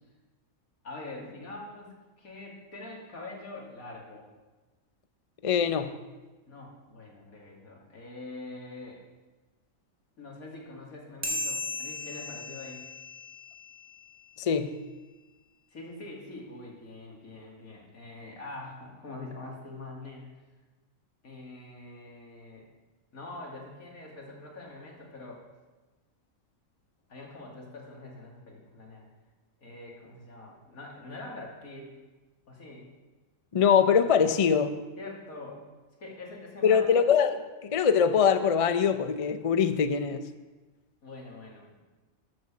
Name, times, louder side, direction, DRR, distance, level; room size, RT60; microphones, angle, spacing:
voice 1, 0.8-4.3 6.5-9.0 10.2-12.8 15.7-20.3 21.2-22.7 23.1-25.5 27.1-29.0 29.6-31.9 32.5-32.9 35.0-35.6 36.0-37.0 41.0-41.8, left 2 dB, 85° left, -2 dB, 2.8 m, -44 dB
voice 2, 5.4-6.0 14.4-14.8 33.5-34.8 36.6-40.2, left 7 dB, 50° left, 10 dB, 0.4 m, -23 dB
sound 1, 11.2-14.1, left 2 dB, 10° right, 2.3 m, -36 dB
12.5 x 6.2 x 7.2 m, 1.2 s
omnidirectional pair, 1.5 m